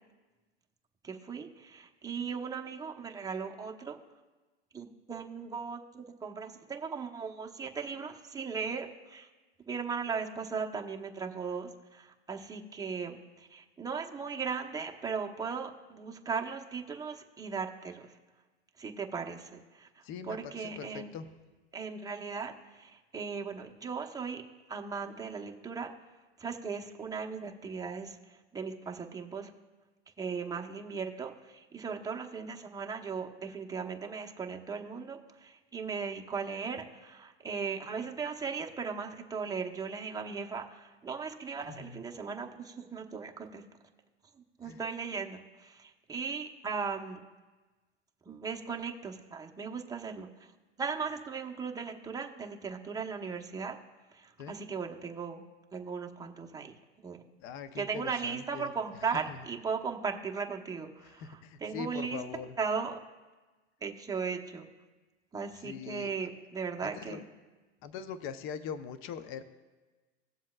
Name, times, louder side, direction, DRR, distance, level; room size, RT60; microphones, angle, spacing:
voice 1, 1.0-4.0 4.7-9.3 9.7-18.0 18.8-21.1 21.7-24.4 24.7-25.9 26.4-29.5 30.2-43.6 44.6-47.2 48.3-50.3 50.8-53.8 54.1-55.4 55.7-56.7 57.0-57.2 57.7-62.2 62.6-63.0 63.8-64.7 65.3-67.2, right 5 dB, 10° right, 1 dB, 0.9 m, -37 dB
voice 2, 20.0-21.3 41.7-42.1 44.6-44.8 54.4-54.5 57.4-58.7 59.3-59.4 61.0-62.6 65.6-66.3 66.8-67.2 67.8-69.4, left 7 dB, 35° left, 11 dB, 0.7 m, -42 dB
18.0 x 7.4 x 2.4 m, 1.2 s
hypercardioid pair, 105°, 36 cm